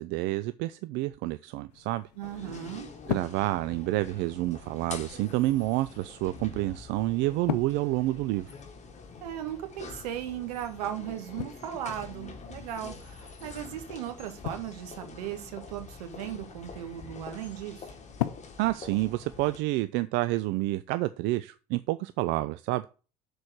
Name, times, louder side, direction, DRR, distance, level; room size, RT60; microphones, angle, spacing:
voice 1, 0.0-2.1 3.1-8.5 18.6-22.8, right 18 dB, 60° right, 0.5 m, -29 dB
sound 1, 1.7-19.7, left 13 dB, 85° left, 0.5 m, -42 dB
sound 2, 2.2-19.6, left 4 dB, 35° left, 1.7 m, -46 dB
voice 2, 2.2-2.9 9.2-17.9, right 11 dB, 80° right, 1.4 m, -37 dB
6.3 x 4.3 x 6.5 m
hypercardioid pair, 70°, 20 cm